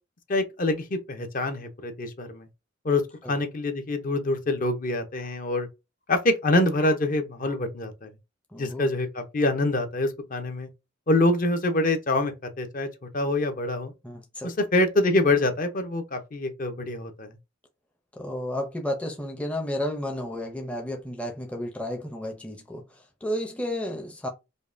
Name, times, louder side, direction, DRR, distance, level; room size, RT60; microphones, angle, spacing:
voice 1, 0.3-2.5 2.8-3.0 3.3-5.7 6.1-8.1 8.6-10.7 11.1-13.9 14.4-17.3, left 2 dB, 45° left, 0.6 m, -25 dB
voice 2, 8.5-8.9 14.0-14.5 18.1-24.3, left 1 dB, 5° left, 0.5 m, -32 dB
5.2 x 2.1 x 2.5 m
head